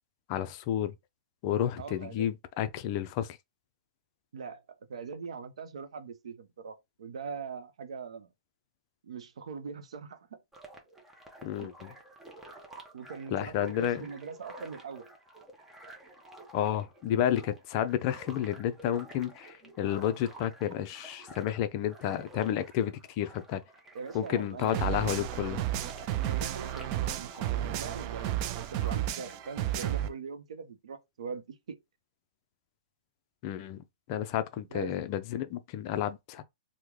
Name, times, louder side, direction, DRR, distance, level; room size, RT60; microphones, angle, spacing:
voice 1, 0.3-0.9 1.4-3.4 11.4-11.9 13.3-14.1 16.5-23.6 24.1-25.6 33.4-36.4, left 10 dB, 40° left, 0.4 m, -31 dB
voice 2, 1.8-2.3 4.3-4.6 4.9-8.3 9.0-10.4 11.6-11.7 12.9-15.1 23.9-24.8 26.2-31.8 34.7-34.9, right 5 dB, 80° right, 0.6 m, -42 dB
sound 1, 10.5-30.2, right 1 dB, 10° right, 0.7 m, -51 dB
sound 2, 24.7-30.1, right 12 dB, 35° right, 0.3 m, -32 dB
3.1 x 2.1 x 3.6 m
hypercardioid pair, 140°, 3 cm